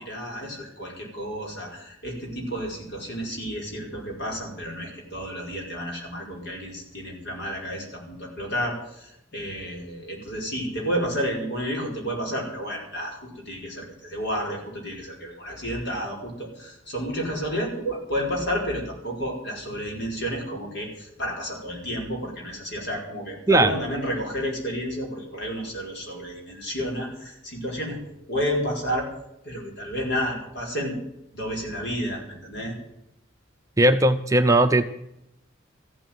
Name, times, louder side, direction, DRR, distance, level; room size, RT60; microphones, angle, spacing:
voice 1, 0.0-28.0 28.3-29.1 29.4-31.0 31.3-32.8, equal, 60° left, 0 dB, 5.3 m, -31 dB
voice 2, 33.8-34.8, right 1 dB, 15° right, 7 dB, 0.6 m, -18 dB
14.5 x 8.9 x 9.4 m, 0.81 s
head